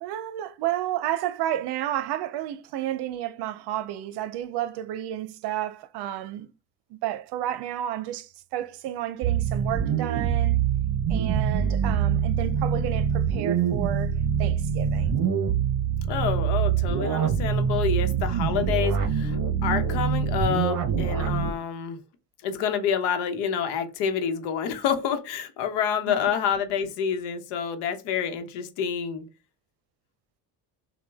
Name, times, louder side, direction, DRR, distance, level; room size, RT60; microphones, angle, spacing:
voice 1, 0.0-6.5 7.0-10.6 11.1-14.1 14.4-15.2 20.9-21.0 26.1-26.2, right 12 dB, 75° right, 0.7 m, -31 dB
sound 1, 9.2-21.5, right 8 dB, 50° right, 0.9 m, -25 dB
voice 2, 16.1-19.4 19.6-22.0 22.4-29.2, left 7 dB, 85° left, 1.0 m, -28 dB
6.1 x 2.3 x 3.4 m
cardioid pair, 100°, 40 cm